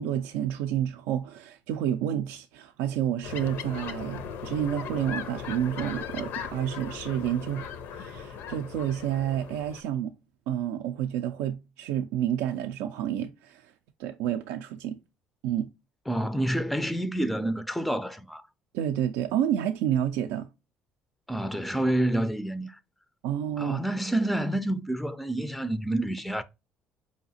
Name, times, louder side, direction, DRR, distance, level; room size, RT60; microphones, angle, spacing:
voice 1, 0.0-10.1 10.5-13.7 14.0-15.0 15.4-15.7 18.7-20.5 23.2-23.8, right 10 dB, 90° right, 0.4 m, -29 dB
sound 1, 3.2-9.8, left 7 dB, 75° left, 0.5 m, -38 dB
voice 2, 16.1-18.4 21.3-22.8 23.6-26.4, right 1 dB, ahead, 0.3 m, -28 dB
4.8 x 2.8 x 2.6 m
cardioid pair, 100°, 4 cm